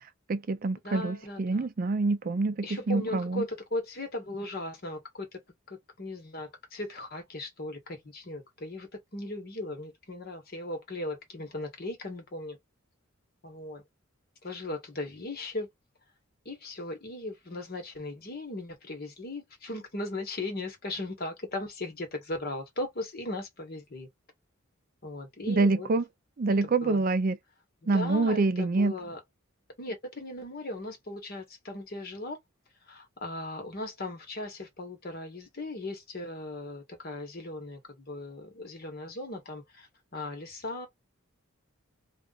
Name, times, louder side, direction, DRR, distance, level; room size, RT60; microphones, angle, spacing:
voice 1, 0.3-3.4 25.5-26.0 26.4-27.4 27.9-28.9, right 3 dB, 45° right, 0.4 m, -26 dB
voice 2, 0.8-1.7 2.6-5.4 5.7-12.6 13.4-13.8 14.4-15.7 16.4-24.1 25.0-25.9 26.6-27.0 27.8-29.2 29.8-32.4 32.9-40.9, left 2 dB, 45° left, 1.1 m, -38 dB
2.4 x 2.3 x 3.9 m
head